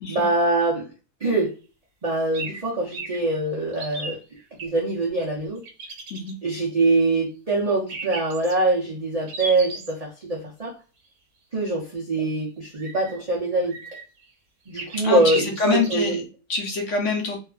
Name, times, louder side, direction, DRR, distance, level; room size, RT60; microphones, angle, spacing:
voice 1, 0.1-0.9 1.2-1.5 2.0-4.2 4.6-5.6 6.4-10.7 11.5-13.8 14.7-16.2, right 2 dB, 80° right, -4 dB, 0.3 m, -23 dB
sound 1, 2.3-2.6 2.9-3.2 3.7-4.7 5.6-6.3 7.9-8.5 9.3-9.9 12.7-13.1 13.6-14.2 14.8-16.0, right 2 dB, 60° right, 0.9 m, -35 dB
voice 2, 15.0-17.4, left 4 dB, 60° left, 2 dB, 0.9 m, -26 dB
2.8 x 2.4 x 2.2 m, 0.35 s
omnidirectional pair, 1.7 m